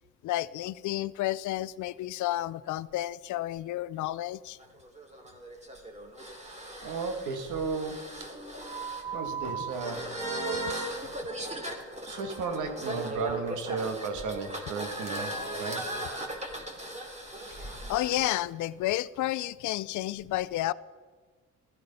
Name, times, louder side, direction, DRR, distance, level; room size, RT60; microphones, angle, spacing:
voice 1, 0.2-4.6 17.6-20.7, left 15 dB, 75° left, 16 dB, 0.5 m, -31 dB
sound 1, 4.6-18.3, right 2 dB, 20° right, 2.8 m, -37 dB
voice 2, 6.8-8.3 8.8-10.0 12.1-15.9, right 4 dB, 80° right, 7 dB, 1.9 m, -34 dB
15.0 x 13.0 x 5.4 m, 1.5 s
cardioid pair, 90°, 30 cm